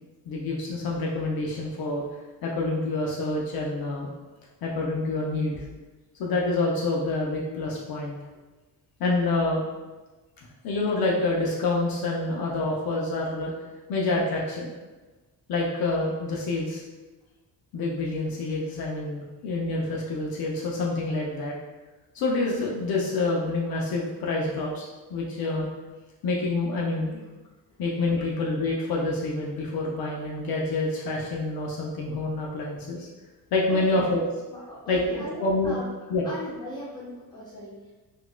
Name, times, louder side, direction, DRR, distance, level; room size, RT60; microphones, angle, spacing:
voice 1, 0.3-2.0 2.4-4.1 4.6-5.6 6.2-8.2 9.0-9.7 10.6-13.5 13.9-14.7 15.5-16.8 17.7-21.5 22.1-25.7 26.2-27.2 27.8-33.1 33.5-34.2 34.9-35.8 36.1-36.2, left 2 dB, 60° left, -3 dB, 0.6 m, -27 dB
voice 2, 33.7-34.0 34.5-35.8 36.2-37.9, left 1 dB, 10° left, -7 dB, 0.9 m, -38 dB
3.9 x 2.4 x 2.2 m, 1.2 s
cardioid pair, 150°, 40 cm